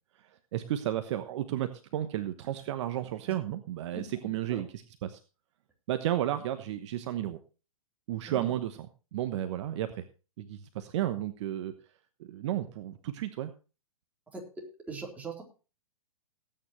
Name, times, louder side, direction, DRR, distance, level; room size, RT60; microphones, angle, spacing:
voice 1, 0.2-5.2 5.9-7.4 8.1-8.9 9.1-10.0 10.4-11.7 12.2-13.5, right 12 dB, 50° right, 9 dB, 1.1 m, -33 dB
voice 2, 14.9-15.4, right 4 dB, 10° right, -2 dB, 4.1 m, -40 dB
19.0 x 9.1 x 3.2 m, 0.33 s
hypercardioid pair, 125°, 19 cm